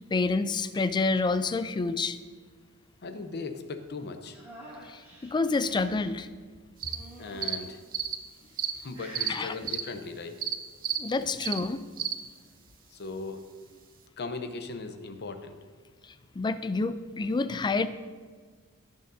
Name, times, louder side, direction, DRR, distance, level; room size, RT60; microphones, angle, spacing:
voice 1, 0.1-2.2 4.9-6.3 9.3-9.5 11.0-11.8 16.4-17.9, left 3 dB, 20° left, 12 dB, 0.3 m, -28 dB
voice 2, 3.0-4.4 7.2-7.8 8.4-10.6 12.9-13.4 14.2-15.6, left 3 dB, 50° left, 7 dB, 0.7 m, -38 dB
sound 1, 4.3-6.1 6.9-7.7 8.4-8.7 8.9-9.6 10.9-11.6, equal, 10° right, 2.2 m, -48 dB
sound 2, 6.8-7.0 7.4-7.6 7.9-8.2 8.6-8.7 9.1-9.3 9.7-9.8 10.4-10.5 10.8-11.0 11.4-11.6 12.0-12.1, right 9 dB, 40° right, 0.6 m, -30 dB
15.0 x 6.5 x 2.7 m, 1.5 s
head